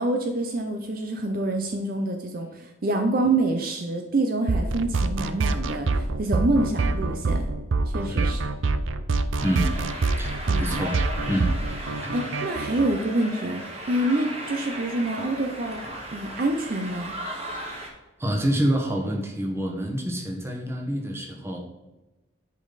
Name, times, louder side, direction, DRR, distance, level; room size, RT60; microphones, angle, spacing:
voice 1, 0.0-7.5 7.9-8.4 10.4-10.7 12.1-15.8 16.1-17.1, right 2 dB, 50° right, 5 dB, 0.6 m, -26 dB
sound 1, 4.5-12.9, right 3 dB, 85° right, 0.5 m, -25 dB
voice 2, 8.1-8.4 9.4-9.8 10.1-11.0 11.3-11.5 12.0-12.1 18.2-21.6, equal, 15° right, 1 dB, 1.3 m, -27 dB
sound 2, 9.4-17.9, right 1 dB, 30° right, 1.5 m, -36 dB
10.0 x 5.2 x 4.0 m, 1.1 s
head